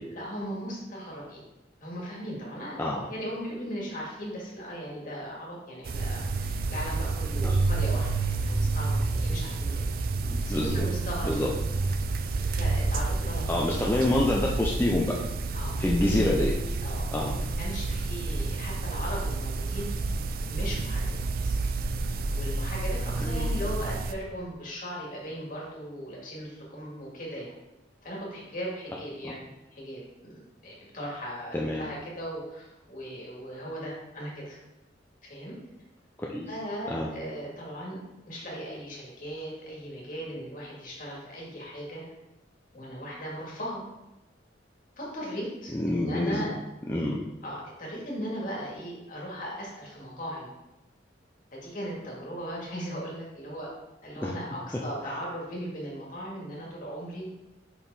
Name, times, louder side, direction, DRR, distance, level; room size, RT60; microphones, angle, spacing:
voice 1, 0.1-1.5 1.8-2.8 3.1-9.9 10.4-11.3 12.4-13.5 15.5-15.8 16.8-17.1 17.6-19.9 20.4-21.5 22.3-27.5 28.0-29.5 29.7-34.6 35.2-35.6 36.5-38.0 38.2-42.0 42.7-43.8 45.0-46.5 47.4-50.5 51.5-53.7 54.0-57.3, equal, 45° left, -4 dB, 1.9 m, -38 dB
sound 1, 5.9-24.1, right 3 dB, 50° right, 0.4 m, -29 dB
voice 2, 10.2-10.8 11.2-11.5 13.5-15.1 15.8-16.6 17.1-17.4 23.2-23.5 29.2-29.3 31.5-31.9 36.2-36.5 36.9-37.1 45.7-46.5 46.9-47.2 54.2-54.3, left 1 dB, 10° left, -3 dB, 0.5 m, -27 dB
5.5 x 4.8 x 4.0 m, 0.98 s
head